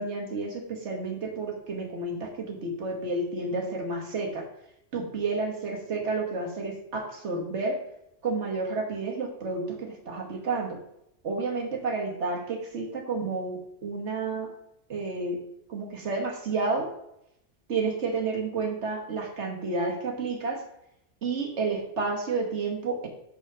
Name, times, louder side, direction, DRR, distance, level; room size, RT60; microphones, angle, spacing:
voice 1, 0.0-4.4 4.9-7.8 8.2-10.8 11.2-14.5 14.9-15.4 15.7-16.9 17.7-20.6 21.2-23.1, right 3 dB, 65° right, 1 dB, 1.5 m, -30 dB
6.7 x 3.9 x 5.4 m, 0.79 s
omnidirectional pair, 1.3 m